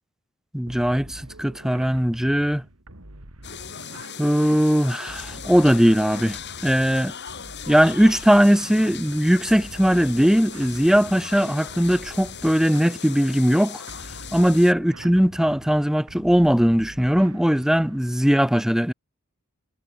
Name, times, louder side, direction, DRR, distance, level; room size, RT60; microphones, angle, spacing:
voice 1, 0.5-2.6 4.2-6.4 6.6-7.1 7.7-13.8 14.3-18.9, equal, ahead, 0.5 m, -19 dB
sound 1, 0.7-18.3, right 1 dB, 80° right, 3.1 m, -45 dB
sound 2, 3.4-14.7, left 8 dB, 55° left, 7.6 m, -38 dB
head